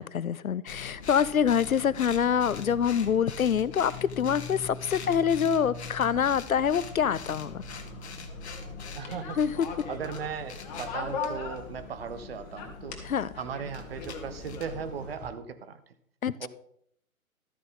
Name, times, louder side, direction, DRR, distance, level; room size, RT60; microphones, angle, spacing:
voice 1, 0.0-7.6 9.4-9.7 13.0-13.3 16.2-16.5, left 8 dB, 75° left, 0.7 m, -26 dB
sound 1, 0.7-15.1, left 5 dB, 50° left, 1.5 m, -42 dB
sound 2, 7.2-12.2 12.5-15.3, left 5 dB, 30° left, 1.9 m, -41 dB
voice 2, 8.9-9.4 9.9-13.0 13.4-15.8 16.4-16.5, right 7 dB, 45° right, 1.1 m, -37 dB
13.0 x 9.4 x 3.8 m
figure-of-eight pair, 125°, 42 cm